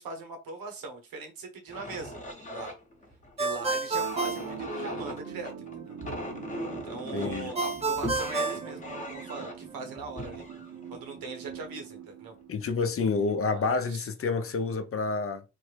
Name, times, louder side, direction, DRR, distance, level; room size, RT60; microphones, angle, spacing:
voice 1, 0.0-2.2 2.5-2.7 3.4-6.0 6.8-10.5 10.9-12.3 13.5-13.6 13.9-14.1, right 4 dB, 75° right, 1.1 m, -40 dB
sound 1, 1.7-11.9 12.6-12.8 13.3-13.8, left 1 dB, 20° left, 0.9 m, -40 dB
Ringtone, 3.4-5.3 7.6-9.5, right 3 dB, 20° right, 0.7 m, -31 dB
sound 2, 3.9-13.0, right 8 dB, 50° right, 0.7 m, -44 dB
voice 2, 7.1-7.5 12.5-15.4, left 4 dB, 40° left, 0.6 m, -28 dB
3.4 x 2.1 x 3.3 m
cardioid pair, 80°, 35 cm